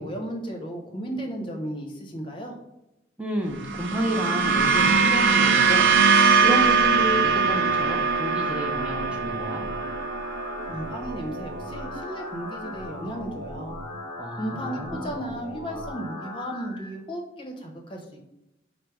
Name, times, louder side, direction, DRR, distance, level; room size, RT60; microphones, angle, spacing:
voice 1, 0.0-2.5 10.7-13.7 14.4-18.3, equal, 25° left, 1 dB, 0.8 m, -34 dB
voice 2, 3.2-5.9 6.4-9.6 14.2-15.2, equal, 5° right, 1 dB, 0.5 m, -31 dB
sound 1, 3.5-12.0, right 5 dB, 70° right, 0.4 m, -22 dB
sound 2, 6.9-16.9, left 1 dB, 25° right, 1.0 m, -38 dB
4.9 x 2.0 x 4.5 m, 0.92 s
head